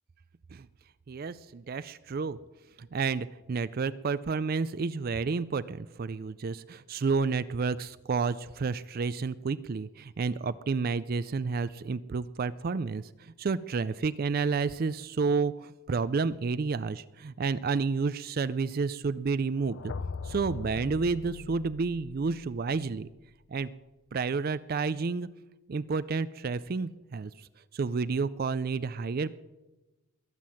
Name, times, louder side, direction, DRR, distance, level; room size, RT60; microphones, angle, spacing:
voice 1, 1.1-2.4 2.8-19.9 20.2-23.1 23.5-23.7 24.1-25.3 25.7-29.4, right 4 dB, 45° right, 15 dB, 0.4 m, -30 dB
sound 1, 19.5-23.5, left 4 dB, 60° left, 0.5 m, -41 dB
21.5 x 7.6 x 7.6 m, 1.1 s
head